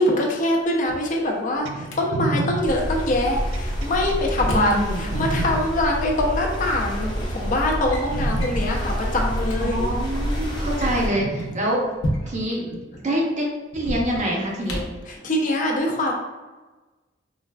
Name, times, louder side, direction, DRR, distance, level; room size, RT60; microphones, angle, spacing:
voice 1, 0.0-9.8 15.1-16.1, left 1 dB, 45° left, 0 dB, 0.5 m, -23 dB
Drawer open or close, 0.6-2.0 3.7-4.8 6.1-6.2 7.0-7.3 7.6-8.1 8.4-8.6 9.1-9.2 9.4-9.6 10.6-12.6 13.7-15.1, equal, 90° left, 0.6 m, -32 dB
sound 1, 1.6-5.6 6.5-7.2 7.7-7.8 8.1-8.6 9.7-9.8 11.1-11.6 12.7-12.8, right 2 dB, 85° right, 0.3 m, -30 dB
sound 2, 2.6-11.1, equal, 25° left, 0.8 m, -27 dB
voice 2, 4.5-5.0 9.6-11.8 12.3-12.7 13.0-13.5 13.7-14.8, right 1 dB, 40° right, -2 dB, 0.6 m, -25 dB
3.2 x 2.4 x 2.2 m, 1.2 s
head